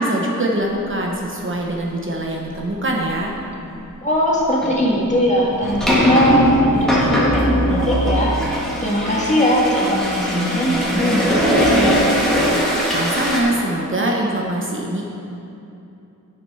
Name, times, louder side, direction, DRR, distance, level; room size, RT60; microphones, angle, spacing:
voice 1, 0.0-3.3 12.9-15.0, right 1 dB, 40° right, -1 dB, 1.0 m, -23 dB
sound 1, 2.6-2.7 3.2-3.4 4.5-13.4, equal, ahead, 2.0 m, -19 dB
voice 2, 4.0-8.4 8.8-12.0, equal, 20° left, -5 dB, 2.0 m, -20 dB
8.9 x 7.7 x 5.6 m, 2.8 s
wide cardioid pair, 125°, 33 cm